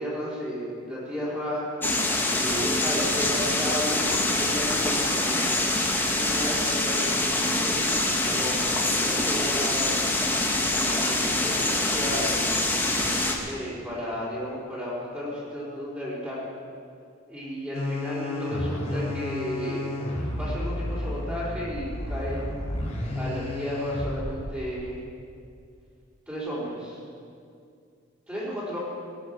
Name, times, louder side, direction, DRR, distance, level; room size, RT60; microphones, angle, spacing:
voice 1, 0.0-1.7 2.3-5.7 6.1-7.8 8.3-10.1 10.7-12.4 13.4-16.5 17.3-19.9 20.4-22.5 23.1-25.0 26.3-27.0 28.3-28.8, equal, 10° right, -9 dB, 4.2 m, -33 dB
sound 1, 1.8-13.4, left 2 dB, 10° left, 1.4 m, -25 dB
sound 2, 17.7-24.5, left 1 dB, 35° left, 4.0 m, -31 dB
19.5 x 10.0 x 6.7 m, 2.4 s
head